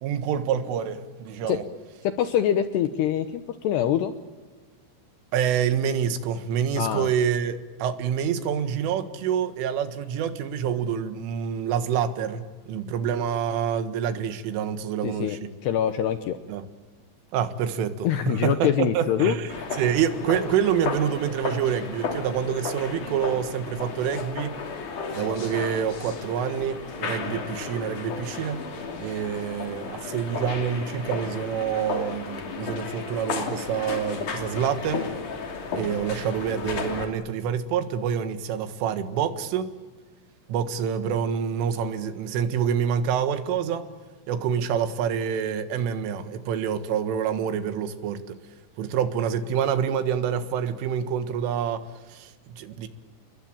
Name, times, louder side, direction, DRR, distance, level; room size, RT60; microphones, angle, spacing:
voice 1, 0.0-1.6 5.3-15.5 16.5-16.6 17.3-19.5 19.8-24.6 25.1-28.6 29.0-35.1 35.7-39.7 40.5-43.9 44.3-48.4 48.8-52.9, right 8 dB, 80° right, 4.1 m, -27 dB
voice 2, 2.0-4.1 6.8-7.1 15.0-16.4 18.0-19.4, left 10 dB, 75° left, 2.7 m, -24 dB
sound 1, 19.5-37.0, left 4 dB, 45° left, 3.8 m, -33 dB
30.0 x 21.5 x 8.7 m
omnidirectional pair, 5.6 m